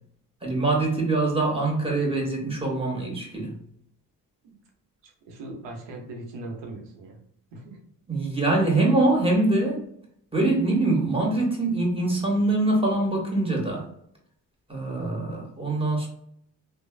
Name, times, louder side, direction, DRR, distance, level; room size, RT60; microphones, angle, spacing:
voice 1, 0.4-3.5 8.1-9.8 10.3-13.9 14.7-16.1, right 2 dB, 15° right, -2 dB, 1.4 m, -24 dB
voice 2, 5.0-7.2 7.5-7.8, right 2 dB, 80° right, 1 dB, 0.9 m, -40 dB
3.1 x 2.2 x 2.3 m, 0.71 s
supercardioid pair, 45°, 42 cm